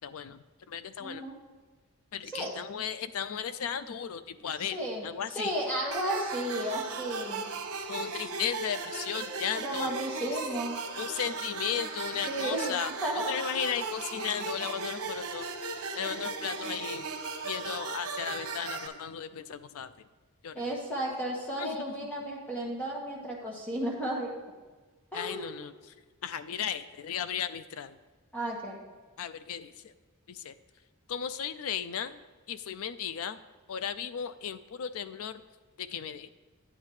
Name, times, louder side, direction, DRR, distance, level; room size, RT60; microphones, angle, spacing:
voice 1, 0.0-0.4 0.7-1.2 2.1-5.5 7.9-9.9 10.2-10.3 11.0-12.9 13.3-17.1 17.4-19.9 20.4-20.6 21.6-21.8 25.1-25.9 26.2-28.0 29.2-29.9 30.3-30.5 31.1-32.2 32.5-33.4 33.7-35.4 35.8-36.3, left 8 dB, 65° left, 12 dB, 0.4 m, -35 dB
voice 2, 1.0-1.4 2.3-2.6 4.7-5.0 5.3-7.5 9.6-11.0 12.3-12.8 13.0-13.3 20.5-24.3 25.1-25.5 28.3-28.8, right 1 dB, 5° left, -3 dB, 1.6 m, -33 dB
sound 1, 5.9-18.9, right 4 dB, 90° right, 1.0 m, -37 dB
10.0 x 8.4 x 3.2 m, 1.3 s
head